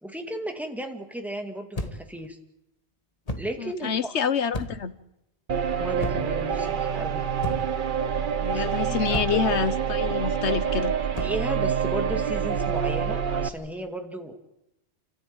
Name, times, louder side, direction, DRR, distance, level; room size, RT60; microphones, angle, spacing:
voice 1, 0.0-2.4 3.4-4.1 5.8-7.3 8.5-8.7 9.0-9.4 11.2-14.3, right 1 dB, ahead, 4 dB, 2.3 m, -34 dB
sound 1, 1.7-2.2 3.3-3.6 4.5-4.9 6.0-6.4 7.4-7.8 9.1-9.5 11.1-11.5, left 1 dB, 35° left, 1.7 m, -33 dB
voice 2, 3.6-4.9 8.4-10.9, left 6 dB, 75° left, 13 dB, 1.3 m, -27 dB
sound 2, 5.5-13.5, right 7 dB, 50° right, 1.1 m, -27 dB
29.0 x 14.0 x 9.0 m, 0.87 s
omnidirectional pair, 1.2 m